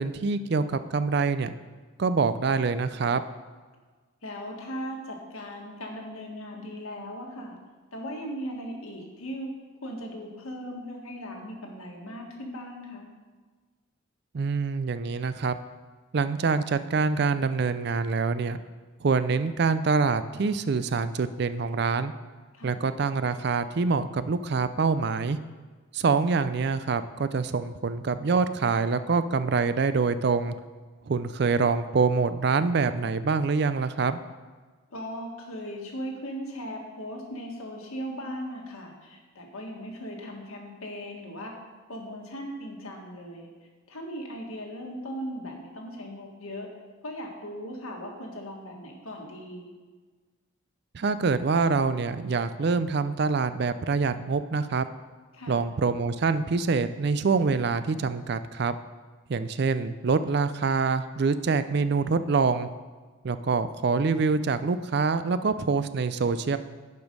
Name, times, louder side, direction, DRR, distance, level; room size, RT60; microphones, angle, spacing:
voice 1, 0.0-1.5 2.0-3.2 14.3-15.6 16.1-18.6 19.0-22.1 22.6-25.4 25.9-30.5 31.1-34.2 50.9-54.9 55.5-58.8 59.3-62.7 63.2-66.6, right 4 dB, 50° right, 12 dB, 0.4 m, -25 dB
voice 2, 4.2-7.6 7.9-9.5 9.8-13.1 22.5-22.8 34.9-41.5 41.9-43.5 43.9-46.7 47.0-49.7 55.3-55.6, equal, 90° left, 0 dB, 1.7 m, -38 dB
10.5 x 5.2 x 5.3 m, 1.4 s
head